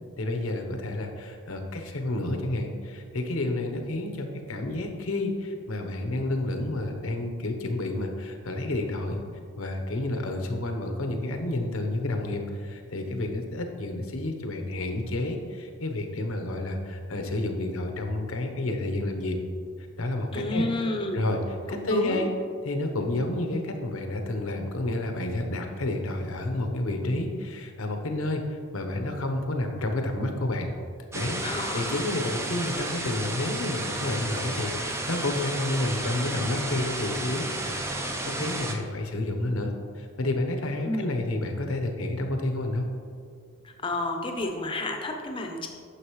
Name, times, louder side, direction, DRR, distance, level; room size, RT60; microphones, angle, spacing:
voice 1, 0.2-9.2 9.6-19.4 20.0-20.7 21.1-22.3 22.6-30.7 31.1-42.9, left 2 dB, 80° left, 4 dB, 1.0 m, -30 dB
voice 2, 20.3-21.2 21.7-22.2 31.4-32.0 40.8-41.1 43.6-45.7, left 2 dB, 25° left, 3 dB, 0.7 m, -31 dB
sound 1, 31.1-38.7, right 2 dB, 15° right, 0.5 m, -32 dB
9.9 x 6.5 x 3.1 m, 2.2 s
head